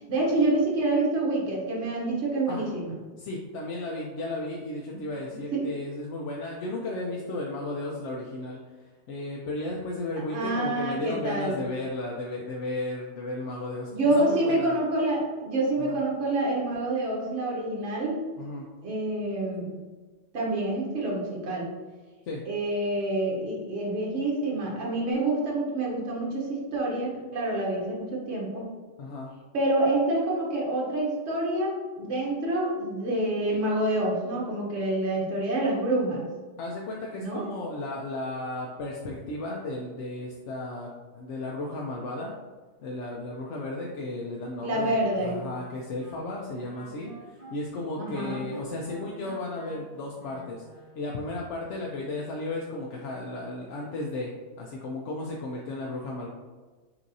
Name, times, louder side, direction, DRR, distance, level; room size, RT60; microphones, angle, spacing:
voice 1, 0.1-3.0 5.5-5.7 10.3-11.6 13.9-18.2 18.8-19.7 20.3-21.7 22.4-28.7 29.5-36.3 37.2-37.5 44.6-45.4 48.0-48.4, right 2 dB, 65° right, -4 dB, 1.3 m, -27 dB
voice 2, 3.2-14.8 15.8-16.0 18.4-18.7 22.2-22.4 29.0-29.3 36.6-42.3 42.8-50.6 51.0-56.3, left 2 dB, 75° left, -2 dB, 0.9 m, -34 dB
Wind instrument woodwind instrument, 45.7-51.0, right 1 dB, 15° left, 1.0 m, -47 dB
5.7 x 2.7 x 2.7 m, 1.3 s
omnidirectional pair, 1.2 m